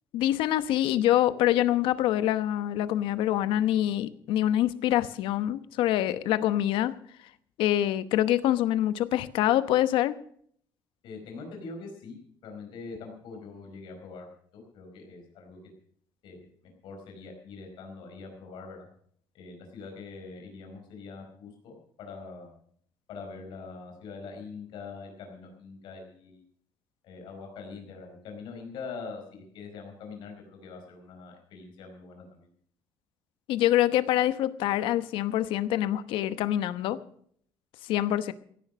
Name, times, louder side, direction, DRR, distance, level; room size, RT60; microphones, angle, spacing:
voice 1, 0.1-6.9 7.6-10.2 33.5-37.0 37.9-38.3, left 13 dB, 85° left, 13 dB, 1.0 m, -25 dB
voice 2, 11.0-12.2 12.4-15.6 16.2-16.5 16.8-18.9 19.3-22.6 23.1-26.4 27.0-32.5, left 4 dB, 70° left, 2 dB, 4.6 m, -43 dB
16.5 x 11.0 x 6.3 m, 0.63 s
cardioid pair, 150°, 9 cm